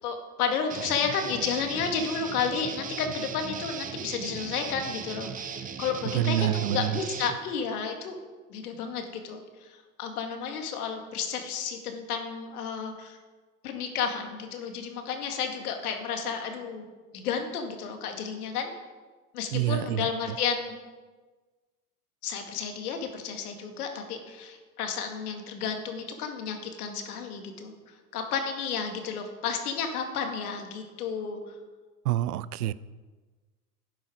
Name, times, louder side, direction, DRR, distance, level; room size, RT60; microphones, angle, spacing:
voice 1, 0.0-8.2 8.5-13.2 13.6-16.9 17.1-18.7 19.3-20.7 22.2-31.5, left 6 dB, 70° left, 4 dB, 2.2 m, -32 dB
Guitar, 0.7-7.4, right 7 dB, 15° right, 0.7 m, -38 dB
voice 2, 6.0-7.0 19.5-20.4 32.0-32.7, right 13 dB, 70° right, 18 dB, 0.6 m, -27 dB
12.0 x 9.4 x 5.1 m, 1.3 s
hypercardioid pair, 105°, 47 cm